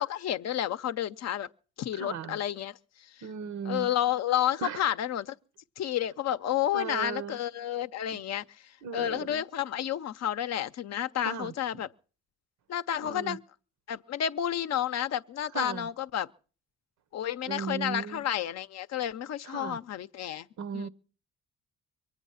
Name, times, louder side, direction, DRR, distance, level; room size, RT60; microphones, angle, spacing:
voice 1, 0.0-1.5 1.8-3.3 3.7-5.4 5.8-11.9 12.7-13.4 13.9-16.3 17.1-20.5 20.7-20.9, left 11 dB, 60° left, 0.6 m, -31 dB
voice 2, 1.9-2.4 3.2-3.9 4.6-4.8 6.7-7.4 8.1-8.2 8.8-9.4 11.2-11.8 13.0-13.4 15.5-15.9 17.5-18.2 19.4-19.8 20.6-20.9, right 6 dB, 70° right, 0.8 m, -37 dB
23.0 x 8.9 x 5.6 m
cardioid pair, 90°, 30 cm